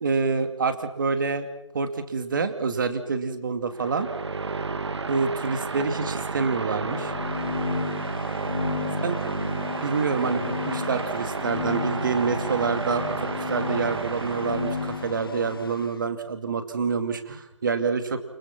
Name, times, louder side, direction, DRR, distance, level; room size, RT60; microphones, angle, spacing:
voice 1, 0.0-1.5 1.7-4.1 5.1-7.1 9.0-9.2 9.8-18.2, right 5 dB, 40° right, 8 dB, 2.6 m, -27 dB
sound 1, 3.7-15.3, right 4 dB, 60° right, 2.0 m, -31 dB
sound 2, 6.8-15.9, left 5 dB, 45° left, 1.3 m, -34 dB
29.0 x 25.0 x 6.0 m, 0.89 s
figure-of-eight pair, 165°, 16 cm